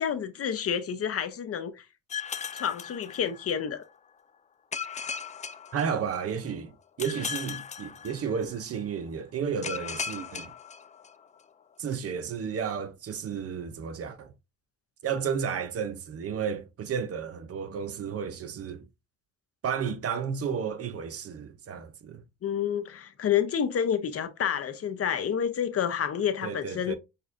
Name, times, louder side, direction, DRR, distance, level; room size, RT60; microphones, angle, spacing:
voice 1, 0.0-1.8 2.5-3.8 22.4-27.0, left 8 dB, 50° left, 0.7 m, -29 dB
sound 1, 2.1-3.7 4.7-6.4 7.0-8.6 9.6-11.4, left 6 dB, 25° left, 0.3 m, -37 dB
voice 2, 5.7-10.5 11.8-14.3 15.0-18.9 19.6-22.2 26.4-27.0, right 7 dB, 50° right, 0.7 m, -32 dB
6.6 x 2.4 x 2.5 m
cardioid pair, 90°, 30 cm